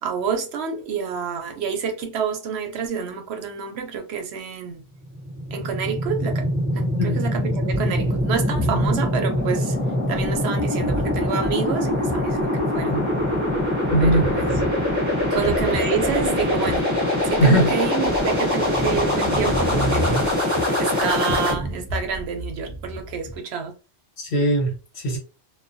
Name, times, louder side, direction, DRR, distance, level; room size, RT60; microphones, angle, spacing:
voice 1, 0.0-4.8 5.5-9.8 10.1-13.0 14.0-14.5 15.3-20.2 20.8-23.8, right 6 dB, 75° right, 0.8 m, -28 dB
sound 1, 5.0-21.5, left 1 dB, 20° right, 0.6 m, -23 dB
sound 2, 7.7-23.4, equal, 30° left, 0.9 m, -31 dB
voice 2, 13.9-14.2 17.4-17.7 24.2-25.2, right 1 dB, 70° left, 1.2 m, -19 dB
2.3 x 2.2 x 2.6 m
omnidirectional pair, 1.1 m